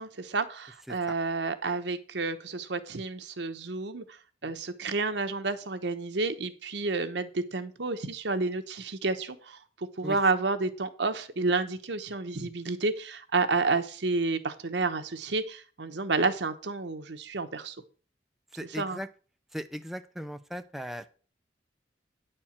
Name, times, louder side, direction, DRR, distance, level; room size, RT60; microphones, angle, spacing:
voice 1, 0.0-4.0 4.4-9.6 10.0-17.7 18.8-19.0, right 3 dB, 70° right, 9 dB, 1.0 m, -30 dB
voice 2, 18.5-19.1 19.5-21.1, equal, ahead, 8 dB, 0.4 m, -38 dB
9.7 x 4.5 x 7.3 m, 0.39 s
head